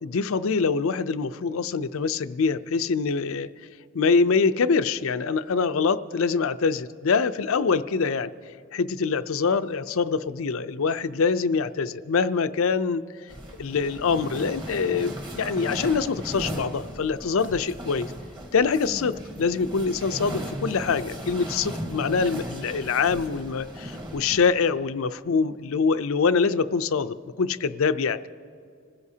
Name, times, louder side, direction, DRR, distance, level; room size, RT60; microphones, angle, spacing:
voice 1, 0.0-3.5 3.9-8.3 8.7-13.0 13.6-18.1 18.5-28.3, left 5 dB, 65° left, 13 dB, 0.5 m, -24 dB
sound 1, 13.3-24.5, equal, 20° right, 1.3 m, -37 dB
26.0 x 15.5 x 2.8 m, 2.3 s
head